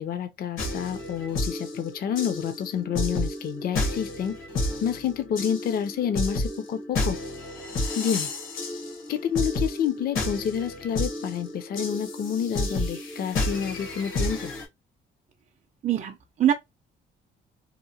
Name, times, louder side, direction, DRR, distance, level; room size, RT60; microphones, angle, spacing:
voice 1, 0.0-4.4 4.8-7.2 7.9-8.3 9.1-14.5, left 8 dB, 50° left, 0.4 m, -29 dB
sound 1, 0.6-14.7, left 2 dB, 85° left, 1.0 m, -31 dB
voice 2, 15.8-16.5, right 11 dB, 35° right, 0.4 m, -23 dB
2.8 x 2.1 x 2.6 m
cardioid pair, 90°, 20 cm